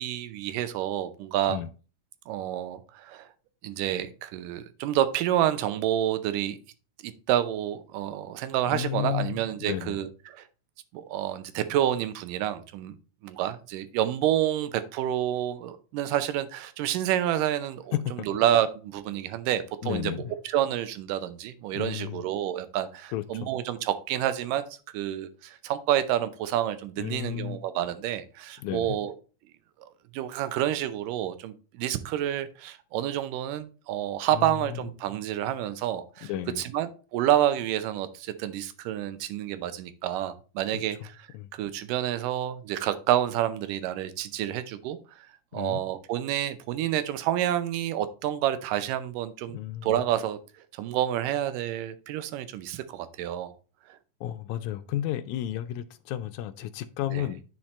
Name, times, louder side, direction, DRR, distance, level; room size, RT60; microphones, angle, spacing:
voice 1, 0.0-1.6 2.3-3.3 3.6-6.6 7.0-10.5 10.9-13.0 13.2-24.6 24.9-29.1 29.8-36.3 36.6-41.0 41.5-45.3 45.5-50.4 50.7-53.5 53.9-54.0 57.1-57.3, right 12 dB, 90° right, 2.3 m, -29 dB
voice 2, 8.7-10.0 17.9-18.3 19.8-20.2 21.7-22.2 23.1-23.5 27.0-27.6 28.6-29.0 34.3-34.8 36.2-36.6 40.7-40.8 41.3-41.5 45.5-45.8 49.5-50.0 54.2-57.4, left 12 dB, 80° left, 1.8 m, -32 dB
10.0 x 4.4 x 3.2 m
omnidirectional pair, 3.7 m